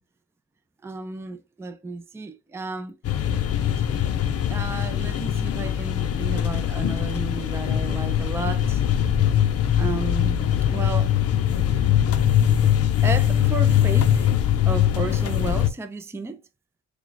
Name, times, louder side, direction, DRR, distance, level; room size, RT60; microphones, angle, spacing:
voice 1, 0.8-3.0 3.8-4.0 4.4-8.8 9.7-11.1 11.6-12.0 13.0-14.3 14.7-16.4, right 3 dB, 10° right, 0.5 m, -33 dB
sound 1, 3.0-15.7, left 10 dB, 50° left, 0.6 m, -22 dB
4.6 x 2.3 x 3.3 m
cardioid pair, 90°, 30 cm